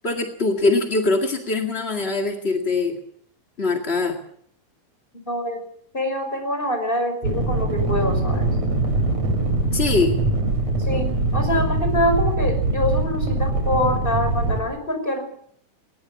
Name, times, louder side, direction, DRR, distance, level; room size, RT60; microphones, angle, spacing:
voice 1, 0.0-3.0 3.6-4.2 9.7-10.2, left 3 dB, 30° left, 3 dB, 1.2 m, -22 dB
voice 2, 5.3-5.6 5.9-8.4 10.8-15.2, left 1 dB, 15° left, 6 dB, 5.7 m, -25 dB
sound 1, 7.2-14.6, right 2 dB, 45° right, 5.0 m, -22 dB
20.5 x 20.0 x 7.1 m, 0.64 s
omnidirectional pair, 4.3 m